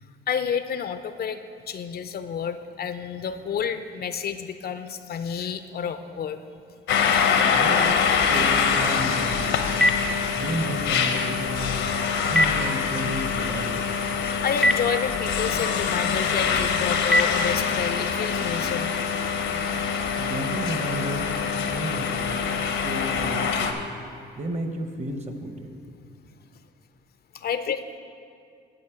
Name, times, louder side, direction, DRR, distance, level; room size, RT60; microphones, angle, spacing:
voice 1, 0.3-1.4 1.7-6.4 14.2-18.9 27.3-27.8, left 7 dB, 50° left, 10 dB, 0.5 m, -30 dB
sound 1, 6.9-23.7, left 6 dB, 75° left, 0.8 m, -25 dB
voice 2, 7.5-8.0 8.3-9.7 10.3-11.8 12.2-13.9 20.2-21.4 21.7-23.9 24.4-25.7, right 1 dB, 35° right, 6 dB, 1.0 m, -32 dB
Telephone, 9.1-18.0, left 1 dB, ahead, 0.4 m, -29 dB
10.5 x 4.3 x 7.8 m, 2.3 s
cardioid pair, 90°, 20 cm